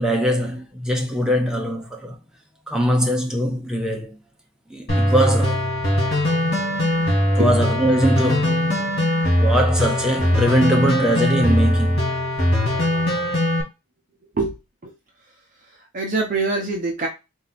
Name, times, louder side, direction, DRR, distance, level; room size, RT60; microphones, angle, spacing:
voice 1, 0.0-2.2 2.7-4.2 4.7-5.6 7.3-8.7 9.4-12.1, equal, 5° right, 0.7 m, -21 dB
sound 1, 4.9-13.6, left 1 dB, 50° left, 2.4 m, -20 dB
voice 2, 15.7-17.1, right 3 dB, 40° right, 0.8 m, -25 dB
4.3 x 2.8 x 4.0 m
head